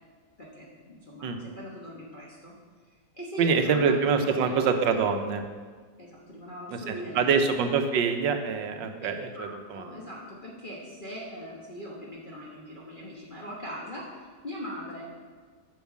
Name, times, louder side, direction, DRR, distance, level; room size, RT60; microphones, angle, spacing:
voice 1, 0.4-2.5 3.1-4.7 6.0-7.4 9.0-15.1, equal, 30° left, -5 dB, 1.1 m, -40 dB
voice 2, 3.4-5.4 6.7-9.1 9.4-9.8, right 5 dB, 80° right, 6 dB, 1.5 m, -25 dB
7.1 x 5.6 x 7.3 m, 1.5 s
omnidirectional pair, 2.0 m